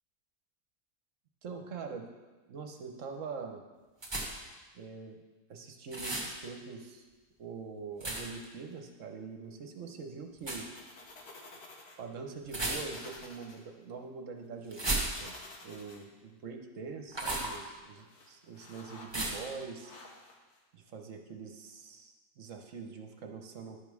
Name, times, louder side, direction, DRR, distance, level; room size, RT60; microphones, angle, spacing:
voice 1, 1.4-2.1 2.5-3.6 4.7-5.2 5.5-7.1 7.4-10.7 12.0-15.4 15.6-20.0 20.7-23.8, right 5 dB, 55° right, 4 dB, 1.2 m, -44 dB
sound 1, 4.0-4.5 5.9-6.3 8.0-8.4 10.4-10.7 12.5-13.2 14.7-15.5 17.1-17.6 19.1-19.5, right 2 dB, 20° right, 1.2 m, -34 dB
sound 2, 8.2-8.7 10.7-12.0 12.3-12.4 12.9-13.6 15.1-16.0 17.5-17.6 18.0-19.1 19.8-20.6, left 3 dB, 75° left, 1.8 m, -52 dB
10.5 x 5.3 x 6.2 m, 1.3 s
omnidirectional pair, 1.7 m